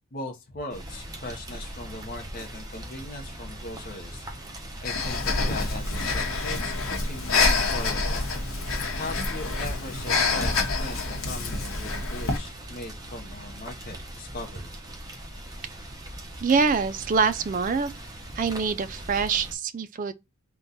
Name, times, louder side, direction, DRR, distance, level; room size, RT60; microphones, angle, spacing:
voice 1, 0.1-4.2 4.8-8.3 9.0-14.7, left 2 dB, 40° left, 0.7 m, -39 dB
Rain, 0.7-19.5, right 1 dB, 15° right, 0.7 m, -40 dB
Breathing, 4.8-12.4, left 3 dB, 70° left, 0.9 m, -27 dB
voice 2, 16.4-17.9 18.4-20.1, right 5 dB, 40° right, 0.3 m, -25 dB
3.7 x 2.2 x 4.0 m
head